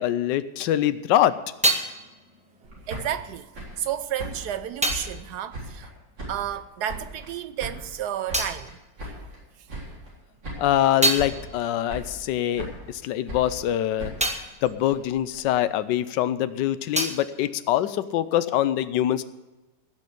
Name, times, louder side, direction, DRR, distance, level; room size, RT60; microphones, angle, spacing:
voice 1, 0.0-1.4 10.6-14.1 14.6-19.2, left 12 dB, 80° left, 1.3 m, -24 dB
sound 1, 1.0-6.8 7.1-9.8 10.2-16.2 16.5-18.5, right 1 dB, 5° right, 1.0 m, -32 dB
sound 2, 2.6-5.9 6.2-7.3 7.6-9.4 9.7-10.2 10.4-10.9 11.1-11.6 11.9-12.9 13.3-15.5, right 1 dB, 90° right, 4.5 m, -39 dB
voice 2, 2.9-5.9 6.3-9.3 9.6-9.7, right 10 dB, 70° right, 1.1 m, -32 dB
16.0 x 6.5 x 8.3 m
omnidirectional pair, 1.9 m